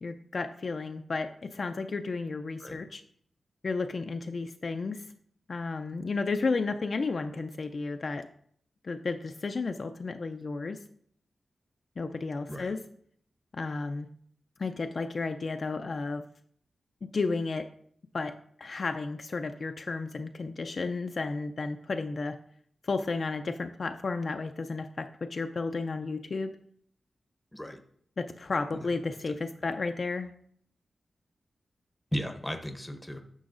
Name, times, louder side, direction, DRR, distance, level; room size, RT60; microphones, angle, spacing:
voice 1, 0.0-3.0 3.6-5.1 5.5-8.3 8.8-10.8 12.0-12.8 13.5-14.1 14.6-16.2 17.0-17.7 18.1-22.4 22.8-26.5 28.2-30.3, left 3 dB, 45° left, 6 dB, 0.3 m, -33 dB
voice 2, 32.1-33.2, equal, 5° left, 7 dB, 0.7 m, -36 dB
10.0 x 6.2 x 2.5 m, 0.64 s
wide cardioid pair, 145°, 0 cm